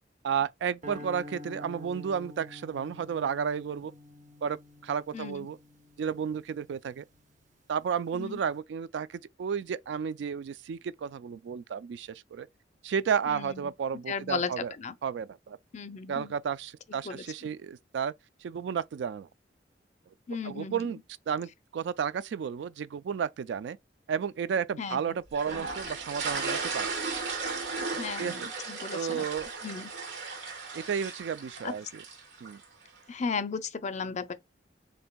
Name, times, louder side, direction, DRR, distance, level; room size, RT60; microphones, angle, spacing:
voice 1, 0.2-3.9 4.4-5.6 6.0-7.0 7.7-12.5 12.8-14.7 15.0-15.6 16.1-18.1 18.4-19.3 20.4-21.0 21.3-23.8 24.1-27.0 28.2-28.5 28.9-29.5 30.7-32.0 32.4-32.6, right 7 dB, 75° right, 0.3 m, -32 dB
sound 1, 0.8-7.2, left 1 dB, 45° right, 0.7 m, -48 dB
voice 2, 5.1-5.5 8.1-8.4 13.3-13.7 14.1-14.9 15.7-16.4 16.9-17.2 20.3-21.0 24.8-25.2 28.0-29.2 29.6-29.9 31.6-31.7 33.1-34.3, left 5 dB, 40° left, 0.4 m, -35 dB
sound 2, 25.3-32.6, right 4 dB, 90° right, 1.3 m, -35 dB
6.6 x 2.6 x 2.2 m
head